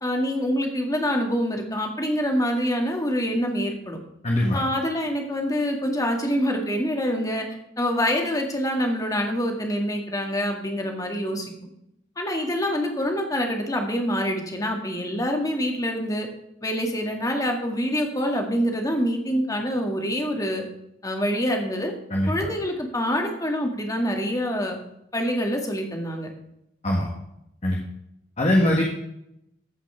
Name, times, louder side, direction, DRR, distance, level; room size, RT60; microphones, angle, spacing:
voice 1, 0.0-4.0 4.5-7.5 7.8-11.5 12.2-16.3 16.6-20.6 21.0-21.9 22.3-24.8 25.1-26.3, equal, 20° left, 2 dB, 1.9 m, -26 dB
voice 2, 4.2-4.6 22.1-22.5 26.8-27.1 27.6-27.8 28.4-28.8, left 1 dB, 35° left, -1 dB, 1.6 m, -21 dB
14.5 x 5.9 x 5.6 m, 0.80 s
head